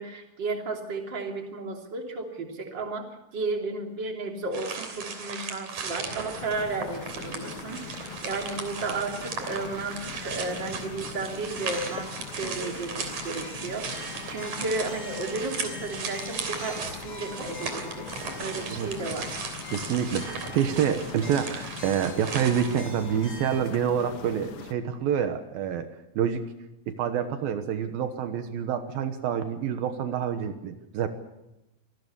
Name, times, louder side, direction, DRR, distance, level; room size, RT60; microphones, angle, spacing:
voice 1, 0.0-19.3, right 3 dB, 30° right, 2 dB, 3.3 m, -33 dB
sound 1, 4.5-22.8, right 5 dB, 55° right, 4.3 m, -37 dB
sound 2, 6.4-24.7, left 8 dB, 65° left, 1.4 m, -42 dB
sound 3, 11.6-23.6, left 1 dB, 85° left, 6.9 m, -46 dB
voice 2, 19.7-25.9 26.2-26.5 26.9-31.1, right 8 dB, 80° right, 8 dB, 3.0 m, -27 dB
25.5 x 18.5 x 7.0 m, 0.91 s
omnidirectional pair, 4.3 m